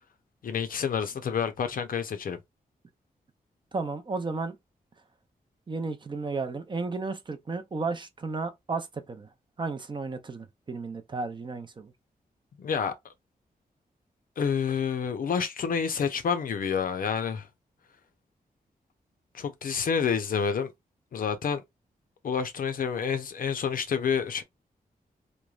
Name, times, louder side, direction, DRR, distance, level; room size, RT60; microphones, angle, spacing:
voice 1, 0.4-2.4 12.6-12.9 14.4-17.5 19.3-20.7 21.1-21.6 22.2-24.4, left 6 dB, 65° left, 0.5 m, -28 dB
voice 2, 3.7-4.6 5.7-9.3 9.6-11.9, right 3 dB, 30° right, 0.5 m, -33 dB
3.1 x 2.1 x 2.4 m
wide cardioid pair, 130°, 16 cm